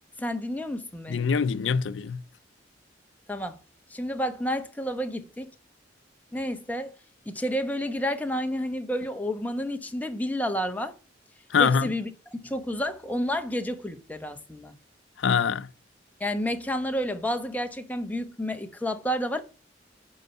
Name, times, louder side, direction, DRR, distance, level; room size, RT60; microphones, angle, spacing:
voice 1, 0.2-1.2 3.3-3.6 3.9-5.5 6.3-7.0 7.3-10.9 11.6-14.7 16.2-19.4, equal, 10° left, 1.0 m, -30 dB
voice 2, 1.1-2.2 11.5-11.9 15.2-15.7, left 6 dB, 80° left, 0.5 m, -24 dB
10.5 x 4.6 x 5.5 m
head